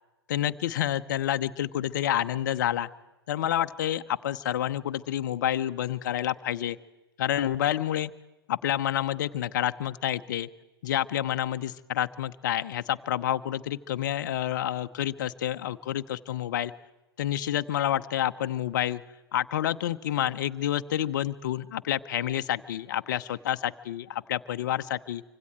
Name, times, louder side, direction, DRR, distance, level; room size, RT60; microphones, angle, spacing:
voice 1, 0.3-2.9 3.3-6.8 7.2-8.1 8.5-10.5 10.8-16.7 17.2-19.0 19.3-25.2, left 11 dB, 50° left, 11 dB, 0.9 m, -29 dB
26.0 x 25.5 x 4.6 m, 1.1 s
figure-of-eight pair, 105°, 13 cm